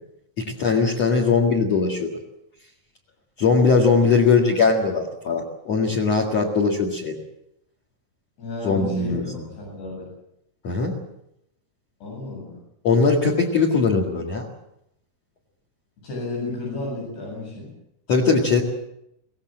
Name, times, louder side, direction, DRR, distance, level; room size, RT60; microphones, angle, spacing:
voice 1, 0.4-2.1 3.4-7.2 8.6-9.4 10.6-11.0 12.8-14.5 18.1-18.6, left 4 dB, 45° left, 3 dB, 2.8 m, -20 dB
voice 2, 8.4-10.1 12.0-12.6 16.0-17.7, left 2 dB, 90° left, -3 dB, 10.0 m, -32 dB
23.5 x 18.0 x 7.6 m, 0.79 s
omnidirectional pair, 4.6 m